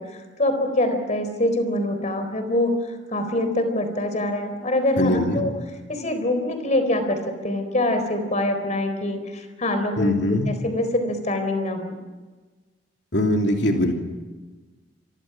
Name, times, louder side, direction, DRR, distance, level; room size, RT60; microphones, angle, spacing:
voice 1, 0.0-5.5 5.9-7.2 7.4-12.0, left 1 dB, 40° left, 8 dB, 4.2 m, -24 dB
voice 2, 5.0-5.4 10.0-10.5 13.1-13.9, left 1 dB, 65° left, 2 dB, 3.0 m, -21 dB
29.5 x 25.0 x 6.1 m, 1.3 s
head